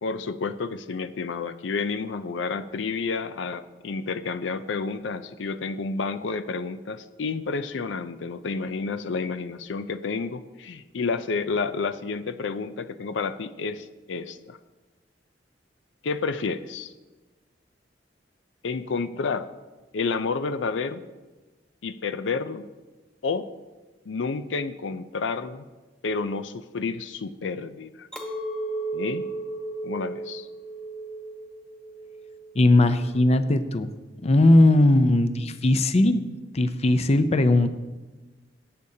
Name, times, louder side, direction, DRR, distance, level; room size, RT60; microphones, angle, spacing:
voice 1, 0.0-14.6 16.0-16.9 18.6-19.5 19.9-21.0 21.8-22.7 23.2-23.5 24.1-25.7 26.0-28.1 28.9-29.3 29.8-30.5, left 4 dB, 80° left, 12 dB, 0.5 m, -30 dB
Chink clink, 28.1-33.5, right 2 dB, 5° left, 1.2 m, -35 dB
voice 2, 32.5-33.9 34.2-36.2 36.5-37.7, left 1 dB, 35° left, 10 dB, 0.5 m, -19 dB
18.0 x 8.5 x 2.8 m, 1.2 s
head